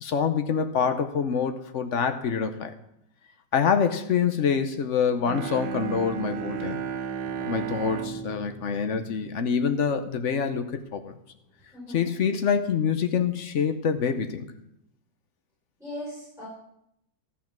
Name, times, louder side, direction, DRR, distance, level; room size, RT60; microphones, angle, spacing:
voice 1, 0.0-2.7 3.5-6.8 7.5-11.1 11.9-14.4, left 6 dB, 55° left, 9 dB, 0.9 m, -26 dB
Bowed string instrument, 5.2-10.1, right 7 dB, 80° right, 1.5 m, -34 dB
voice 2, 11.7-12.1 15.8-16.5, left 1 dB, ahead, -9 dB, 5.3 m, -38 dB
13.0 x 7.4 x 6.0 m, 0.79 s
omnidirectional pair, 2.0 m